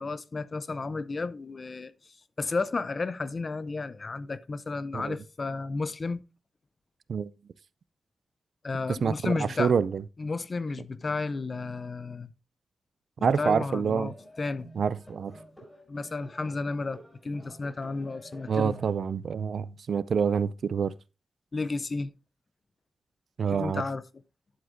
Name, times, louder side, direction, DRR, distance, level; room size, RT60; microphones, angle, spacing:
voice 1, 0.0-6.2 8.6-9.7 10.2-12.3 13.2-14.7 15.9-18.8 21.5-22.1 23.5-24.0, left 3 dB, 35° left, 0.5 m, -32 dB
voice 2, 8.9-10.0 13.2-14.1 14.8-15.4 18.5-20.9 23.4-23.8, right 6 dB, 70° right, 0.3 m, -27 dB
sound 1, 13.3-18.9, equal, 5° left, 5.7 m, -50 dB
11.0 x 7.8 x 2.6 m
wide cardioid pair, 130°, 0 cm